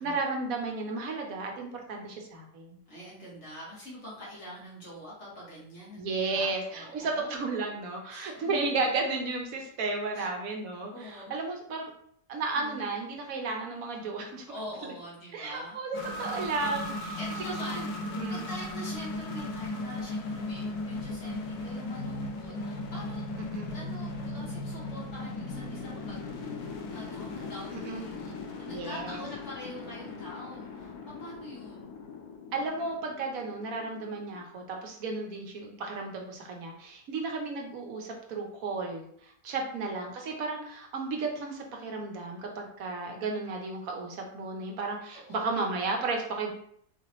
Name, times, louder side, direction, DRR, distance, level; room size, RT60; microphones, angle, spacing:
voice 1, 0.0-2.8 6.0-11.9 12.3-14.5 15.3-17.2 18.2-18.5 23.5-23.8 27.8-28.1 28.7-29.2 32.5-46.5, right 3 dB, 70° right, 2 dB, 1.2 m, -33 dB
voice 2, 2.9-7.3 8.1-8.7 10.1-10.3 10.9-11.3 12.5-12.8 14.5-15.8 16.4-23.2 23.7-26.5 26.9-31.9 39.5-39.9 45.3-45.5, equal, 50° left, -7 dB, 1.9 m, -45 dB
sound 1, 15.9-34.4, left 2 dB, 85° left, 1.2 m, -37 dB
4.0 x 2.9 x 3.0 m, 0.65 s
omnidirectional pair, 1.6 m